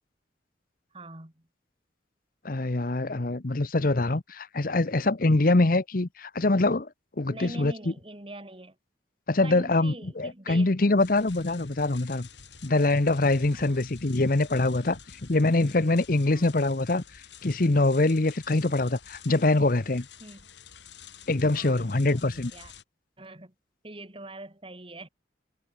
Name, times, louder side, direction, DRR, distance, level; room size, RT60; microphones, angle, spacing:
voice 1, 0.9-1.5 7.3-8.8 9.4-11.0 13.5-13.8 16.3-16.5 20.2-20.5 21.5-22.7 23.2-23.5 23.8-25.1, right 2 dB, 30° right, 2.8 m, -44 dB
voice 2, 2.4-6.9 7.2-7.7 9.3-12.3 12.6-15.0 15.3-20.0 21.3-22.5, left 2 dB, 50° left, 0.9 m, -24 dB
sound 1, 11.0-22.8, left 7 dB, 70° left, 5.9 m, -50 dB
head